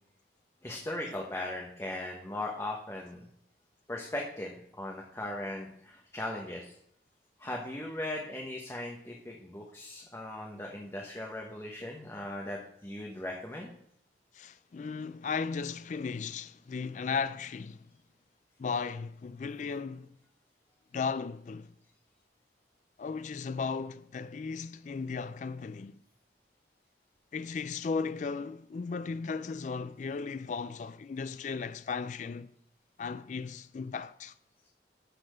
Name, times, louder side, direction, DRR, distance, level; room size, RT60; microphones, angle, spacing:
voice 1, 0.6-3.3 3.9-6.7 7.4-13.7, left 1 dB, 15° left, 1.0 m, -38 dB
voice 2, 14.3-17.9 18.6-20.1 20.9-21.7 23.0-26.0 27.3-32.5 33.0-34.3, left 5 dB, 45° left, 0.3 m, -36 dB
12.0 x 4.2 x 6.3 m
head